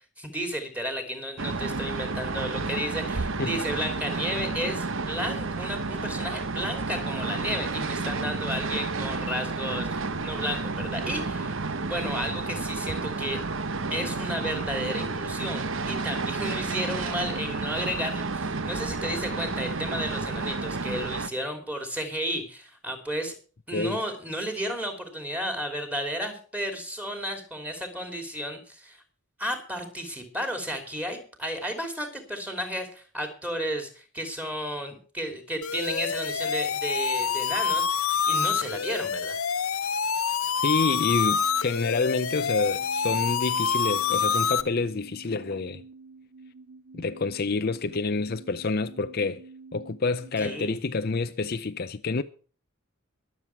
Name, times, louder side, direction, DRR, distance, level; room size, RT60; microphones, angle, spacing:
voice 1, 0.2-11.6 11.9-13.4 13.9-23.3 23.7-29.0 29.4-39.4 50.4-50.8, equal, 5° right, 3.0 m, -33 dB
sound 1, 1.4-21.3, right 3 dB, 60° right, 1.0 m, -31 dB
voice 2, 23.7-24.0 40.6-45.8 46.9-49.4 49.7-52.2, left 4 dB, 45° left, 0.6 m, -28 dB
sound 2, 35.6-44.6, left 6 dB, 70° left, 0.9 m, -27 dB
sound 3, 40.9-50.6, right 4 dB, 80° right, 1.9 m, -49 dB
22.0 x 7.6 x 4.6 m
head